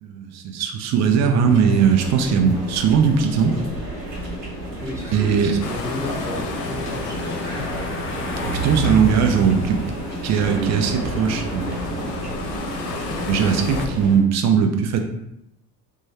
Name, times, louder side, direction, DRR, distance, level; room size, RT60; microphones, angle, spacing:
voice 1, 0.0-3.6 5.1-5.6 8.5-9.8 10.2-12.1 13.0-15.0, right 6 dB, 35° right, 4 dB, 0.6 m, -19 dB
sound 1, 1.5-14.2, equal, 85° right, 0.9 m, -31 dB
sound 2, 2.6-13.5, right 3 dB, 25° left, 0.6 m, -35 dB
voice 2, 4.8-7.6, left 2 dB, 5° right, -5 dB, 1.3 m, -33 dB
sound 3, 5.6-13.9, left 4 dB, 75° left, 0.6 m, -34 dB
3.1 x 2.2 x 4.2 m, 0.81 s
figure-of-eight pair, 60°, 48 cm